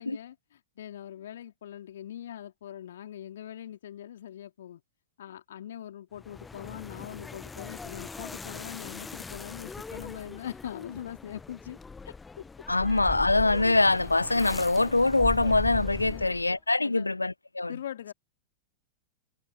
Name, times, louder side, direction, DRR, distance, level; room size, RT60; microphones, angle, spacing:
voice 1, 0.0-4.8 5.2-11.8 12.0-12.5 16.1-16.4 16.8-17.2 17.7-18.1, left 10 dB, 60° left, 3.0 m, -42 dB
sound 1, 6.2-16.6, left 4 dB, 15° left, 1.2 m, -40 dB
voice 2, 12.7-17.7, left 2 dB, 85° left, 0.6 m, -24 dB
figure-of-eight pair, 90°, 0 cm